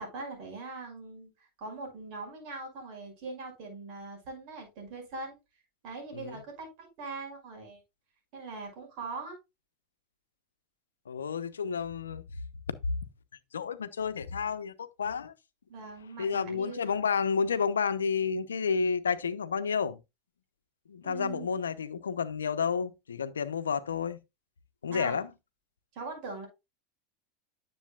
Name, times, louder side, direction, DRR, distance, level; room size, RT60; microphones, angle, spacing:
voice 1, 0.0-5.4 5.8-7.8 8.3-9.4 15.7-16.9 21.0-21.5 24.9-25.2 25.9-26.5, right 3 dB, 55° right, 5.7 m, -41 dB
voice 2, 6.1-6.4 11.1-12.2 13.5-15.3 16.2-20.0 20.9-24.2 24.8-25.3, left 6 dB, 85° left, 0.7 m, -30 dB
10.0 x 7.1 x 2.4 m
hypercardioid pair, 90°, 0 cm